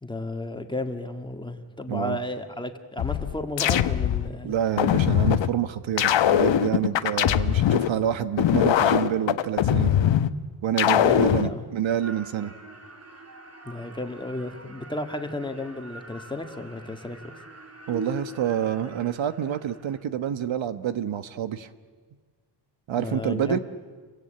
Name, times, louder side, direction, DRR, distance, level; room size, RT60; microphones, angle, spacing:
voice 1, 0.0-4.5 10.8-11.6 13.7-17.2 23.0-23.6, left 2 dB, 10° left, 5 dB, 1.8 m, -33 dB
voice 2, 1.9-2.2 4.4-9.9 10.6-12.5 17.9-21.7 22.9-23.6, right 10 dB, 75° right, 11 dB, 1.3 m, -28 dB
sound 1, 3.0-4.3 4.8-5.5 6.0-7.9 8.4-10.3 10.8-11.5, left 10 dB, 70° left, 1.0 m, -21 dB
sound 2, 12.0-20.0, right 1 dB, 30° right, 2.7 m, -43 dB
29.0 x 23.0 x 8.9 m, 1.5 s
wide cardioid pair, 150°, 46 cm